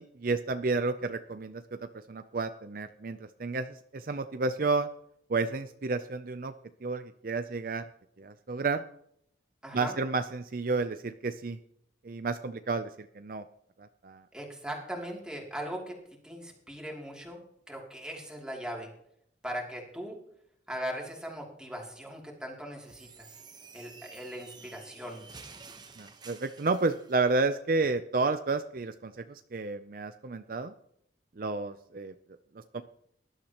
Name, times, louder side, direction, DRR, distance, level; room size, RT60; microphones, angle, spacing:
voice 1, 0.0-4.9 5.3-6.5 6.8-7.8 8.2-8.8 9.7-11.6 12.0-13.4 14.0-14.2 26.0-30.7 31.4-32.1 32.7-32.8, right 3 dB, 50° right, 10 dB, 0.5 m, -31 dB
voice 2, 9.6-9.9 14.3-16.0 16.2-17.4 17.7-18.9 19.4-20.2 20.7-23.4 23.7-25.2, equal, 5° right, -1 dB, 2.8 m, -39 dB
sound 1, 22.8-27.2, right 5 dB, 25° right, 1.0 m, -51 dB
19.0 x 12.0 x 3.0 m, 0.72 s
head